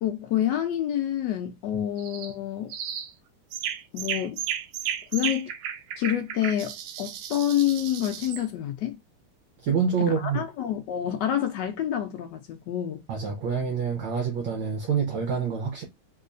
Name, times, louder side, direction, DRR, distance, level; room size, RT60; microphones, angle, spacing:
voice 1, 0.0-2.7 3.9-4.4 5.1-5.5 6.0-9.0 10.2-13.0, left 11 dB, 85° left, 0.9 m, -28 dB
sound 1, 2.0-2.3 2.7-3.1 3.5-8.5, right 9 dB, 90° right, 1.5 m, -34 dB
voice 2, 9.6-10.4 13.1-15.8, right 6 dB, 70° right, 1.5 m, -26 dB
3.5 x 3.1 x 2.5 m
omnidirectional pair, 2.4 m